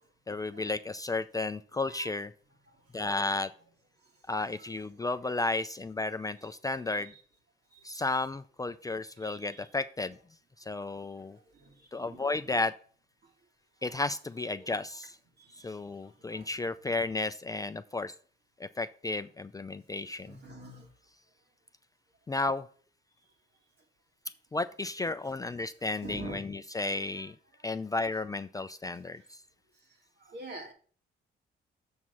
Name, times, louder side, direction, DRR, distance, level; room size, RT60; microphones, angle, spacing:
voice 1, 0.3-2.3 2.9-3.5 4.3-7.1 7.8-10.2 10.6-11.4 11.9-12.7 13.8-15.2 15.6-18.1 18.6-20.4 22.3-22.7 24.5-27.3 27.6-29.4, left 3 dB, 20° left, 10 dB, 0.4 m, -33 dB
voice 2, 15.4-15.7 16.3-16.5 20.3-20.9 26.0-26.4 30.3-30.7, right 3 dB, 60° right, 2 dB, 2.6 m, -44 dB
7.4 x 4.6 x 5.4 m, 0.43 s
cardioid pair, 90°, 20 cm